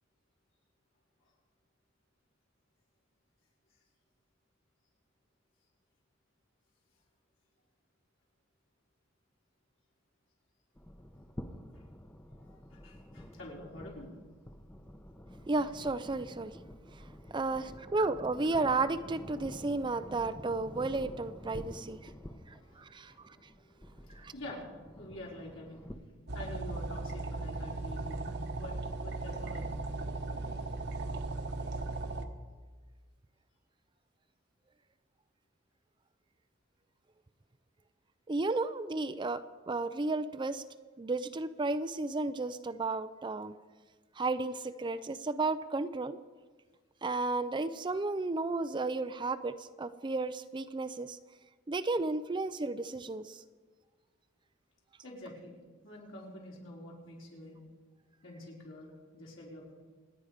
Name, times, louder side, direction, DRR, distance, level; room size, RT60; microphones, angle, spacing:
sound 1, 10.7-25.9, equal, 10° left, 0.8 m, -49 dB
voice 1, 12.3-14.1 22.2-26.0 26.3-29.8 55.0-57.6 58.2-59.7, left 1 dB, 70° left, -3 dB, 4.9 m, -48 dB
voice 2, 15.5-16.6 16.9-17.0 17.3-22.1 22.8-23.4 24.2-24.3 38.3-40.6 41.0-43.5 44.2-46.2 47.0-51.2 51.7-53.4, right 3 dB, 25° right, 12 dB, 0.5 m, -33 dB
sound 2, 26.3-32.3, right 2 dB, 55° right, 1.2 m, -37 dB
27.5 x 9.7 x 5.1 m, 1.4 s
head